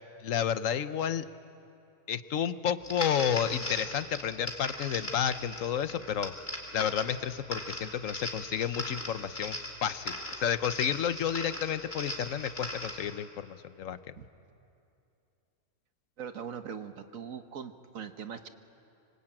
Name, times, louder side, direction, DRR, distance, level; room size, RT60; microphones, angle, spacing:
voice 1, 0.2-1.2 2.1-6.3 6.7-14.0, left 9 dB, 75° left, 13 dB, 1.2 m, -31 dB
sound 1, 2.8-13.1, left 1 dB, 35° left, 3.1 m, -39 dB
voice 2, 16.2-18.5, right 7 dB, 85° right, 9 dB, 1.6 m, -41 dB
25.5 x 25.5 x 8.9 m, 2.7 s
omnidirectional pair, 1.4 m